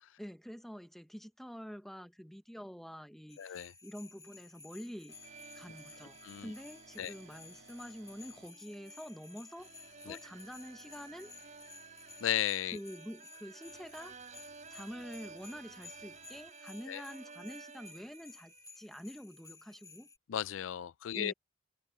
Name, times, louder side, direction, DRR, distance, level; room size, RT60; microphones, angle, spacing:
voice 1, 0.2-5.2 5.5-9.7 10.1-11.3 12.7-14.2 14.7-20.1 21.1-21.3, equal, ahead, 1.0 m, -47 dB
sound 1, 3.3-20.2, left 4 dB, 20° left, 3.7 m, -56 dB
voice 2, 3.4-3.7 6.2-6.5 7.0-7.1 10.1-10.2 12.2-12.8 16.9-17.0 20.3-21.3, left 11 dB, 85° left, 0.4 m, -35 dB
sound 2, 5.1-8.5 9.6-12.3 13.6-16.5, right 4 dB, 65° right, 2.2 m, -61 dB
sound 3, 5.2-18.9, right 5 dB, 40° right, 4.5 m, -55 dB
head